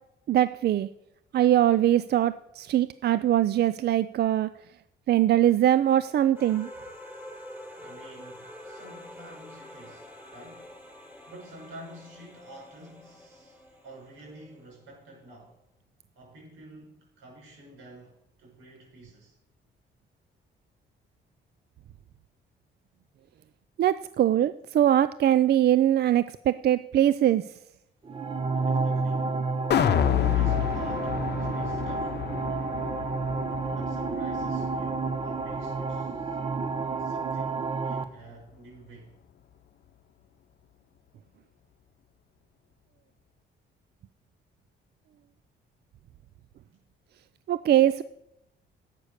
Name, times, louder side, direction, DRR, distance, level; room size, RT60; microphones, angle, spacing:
voice 1, 0.3-0.9 1.3-4.5 5.1-6.7 23.8-27.4 47.5-48.0, right 12 dB, 55° right, 15 dB, 0.4 m, -22 dB
sound 1, 6.4-15.0, left 1 dB, 10° right, 4.9 m, -47 dB
voice 2, 7.7-10.8 11.3-15.6 16.2-19.4 28.5-29.4 29.8-32.4 33.6-36.4 37.0-39.1, right 1 dB, 85° right, -1 dB, 6.1 m, -49 dB
sound 2, 28.0-38.0, right 4 dB, 25° right, 1.1 m, -30 dB
sound 3, 29.7-35.9 36.3-36.4, left 10 dB, 55° left, 0.8 m, -29 dB
11.5 x 8.3 x 6.6 m, 0.82 s
cardioid pair, 90°, 20 cm